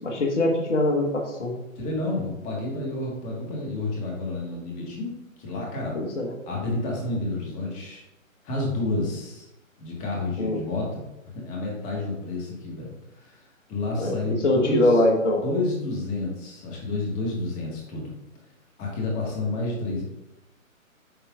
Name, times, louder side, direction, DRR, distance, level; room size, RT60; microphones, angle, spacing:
voice 1, 0.0-1.5 5.9-6.3 10.4-10.6 14.0-15.4, left 1 dB, 55° left, 1 dB, 1.5 m, -23 dB
voice 2, 1.8-5.1 5.4-6.0 6.5-8.0 8.4-9.5 9.8-11.1 11.4-13.4 13.7-15.0 15.4-18.1 18.8-20.0, left 2 dB, 20° left, -2 dB, 1.6 m, -30 dB
8.7 x 5.5 x 2.5 m, 0.94 s
figure-of-eight pair, 130°, 41 cm